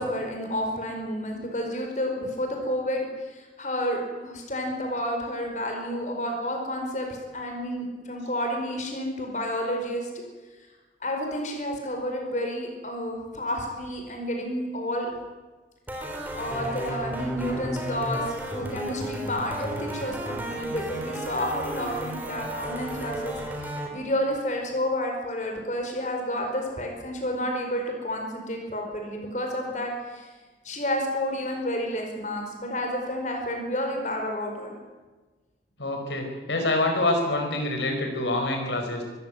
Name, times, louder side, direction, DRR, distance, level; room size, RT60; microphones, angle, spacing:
voice 1, 0.0-10.2 11.0-15.1 16.3-30.3 30.6-34.7, equal, 40° left, 2 dB, 4.8 m, -30 dB
sound 1, 15.9-23.9, right 1 dB, 10° right, 3.5 m, -34 dB
voice 2, 35.8-39.0, left 2 dB, 85° left, 3 dB, 5.0 m, -26 dB
24.0 x 15.0 x 9.1 m, 1.3 s
head